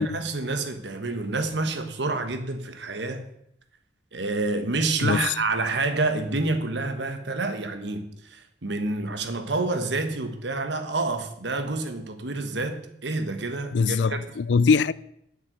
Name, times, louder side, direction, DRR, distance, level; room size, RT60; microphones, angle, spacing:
voice 1, 0.0-3.2 4.1-14.2, right 3 dB, 65° right, 1.3 m, -28 dB
voice 2, 5.0-5.3 13.7-14.9, left 5 dB, 70° left, 0.4 m, -22 dB
9.3 x 7.1 x 8.1 m
head